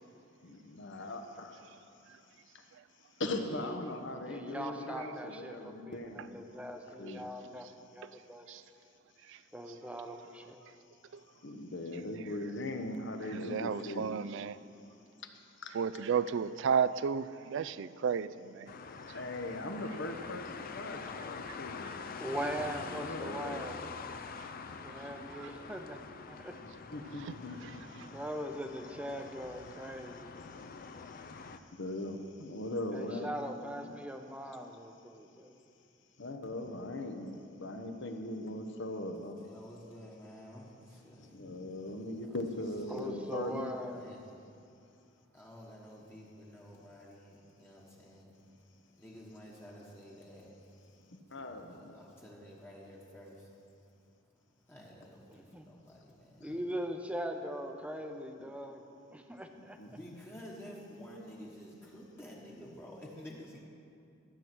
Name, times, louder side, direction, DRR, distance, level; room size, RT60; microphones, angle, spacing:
voice 1, 0.4-1.6 2.5-2.6 3.2-6.4 7.0-7.3 11.4-14.1 15.6-15.7 19.1-21.9 22.9-23.6 26.5-27.8 30.6-33.3 36.2-39.4 41.2-43.7 51.1-52.0 56.4-56.6 59.6-59.9, left 1 dB, 65° left, 1.0 m, -40 dB
voice 2, 4.3-8.6 9.5-10.6 22.2-23.8 24.8-26.0 26.3-26.6 28.0-30.3 32.9-35.5 42.9-44.0 55.3-55.7 56.4-58.8 59.1-59.8, equal, 5° right, 0.7 m, -41 dB
voice 3, 13.3-14.6 15.7-18.7 21.5-21.6 25.3-25.5, right 6 dB, 65° right, 0.4 m, -32 dB
sound 1, 18.7-31.6, left 5 dB, 45° left, 0.5 m, -45 dB
voice 4, 39.4-41.4 42.2-42.6 42.9-44.3 45.0-48.6 49.0-50.9 51.2-53.5 54.7-56.6 59.9-63.6, equal, 10° left, 1.3 m, -51 dB
14.0 x 7.9 x 6.0 m
head